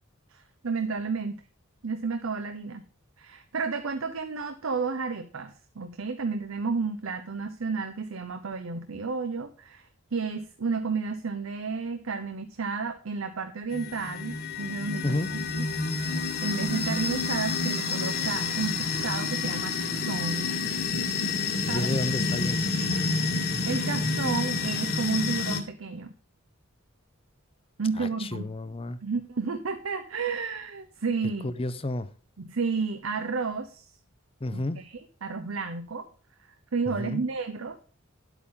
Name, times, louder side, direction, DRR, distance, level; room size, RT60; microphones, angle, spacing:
voice 1, 0.3-1.4 1.8-2.8 3.2-15.2 15.5-15.7 16.4-20.5 21.7-21.9 23.7-26.1 27.8-28.5 29.0-31.5 32.4-33.9 34.5-36.1 36.7-37.8, right 4 dB, 70° right, 0.8 m, -32 dB
sound 1, 13.7-25.6, left 4 dB, 50° left, 1.6 m, -29 dB
voice 2, 21.7-22.6 28.0-29.0 31.4-32.1 34.4-34.8 36.9-37.2, left 2 dB, 25° left, 0.6 m, -31 dB
10.5 x 8.2 x 3.7 m
head